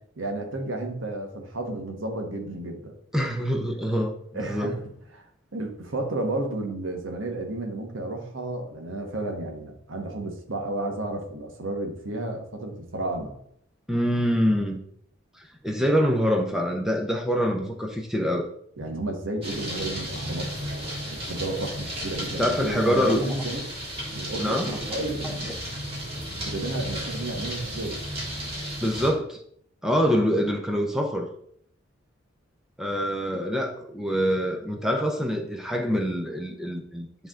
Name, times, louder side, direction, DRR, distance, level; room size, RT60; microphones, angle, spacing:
voice 1, 0.2-2.9 4.3-4.7 5.1-5.2 5.5-13.3 18.8-20.5 21.1-23.6 24.1-25.5 26.4-28.0, right 2 dB, 75° right, 1.3 m, -32 dB
voice 2, 3.1-4.8 13.9-14.8 15.4-18.5 22.4-23.2 24.4-24.8 25.2-25.3 28.8-29.4 29.8-31.3 32.8-37.3, equal, 5° right, 0.7 m, -25 dB
sound 1, 19.4-29.1, equal, 30° right, 2.9 m, -34 dB
10.0 x 3.5 x 3.7 m
head